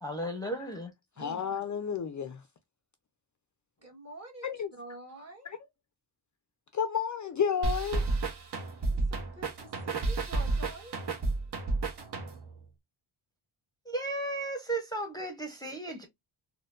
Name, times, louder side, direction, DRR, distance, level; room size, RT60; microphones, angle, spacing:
voice 1, 0.0-0.9 13.9-16.1, right 1 dB, 10° left, 0.7 m, -35 dB
voice 2, 1.2-2.5 4.4-4.7 5.4-5.6 6.7-8.1, left 7 dB, 40° left, 0.4 m, -32 dB
voice 3, 3.8-4.5 4.8-5.5 8.9-10.9, right 1 dB, 30° right, 1.6 m, -47 dB
sound 1, 7.6-12.6, right 3 dB, 55° right, 1.0 m, -31 dB
4.2 x 2.2 x 2.3 m
wide cardioid pair, 130°, 49 cm